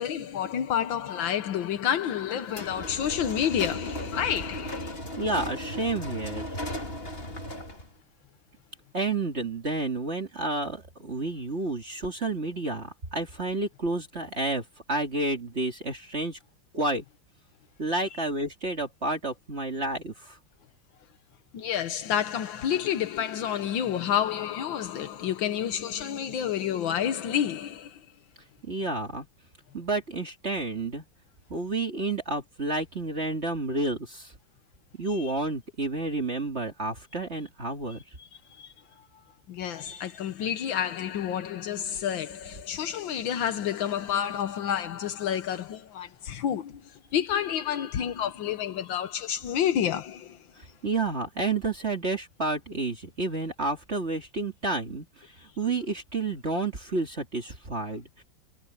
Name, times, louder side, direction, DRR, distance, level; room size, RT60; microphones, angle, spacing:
voice 1, 0.0-5.0 21.5-28.0 35.1-35.3 38.2-39.1 39.5-50.5, left 9 dB, 85° left, 1.8 m, -29 dB
sound 1, 2.5-7.9, left 1 dB, 30° left, 3.3 m, -36 dB
voice 2, 5.2-6.6 8.9-16.4 16.7-17.1 17.8-20.4 28.6-29.3 29.7-31.0 31.5-34.3 34.9-38.2 50.6-58.2, right 2 dB, 35° right, 2.7 m, -30 dB
omnidirectional pair, 2.1 m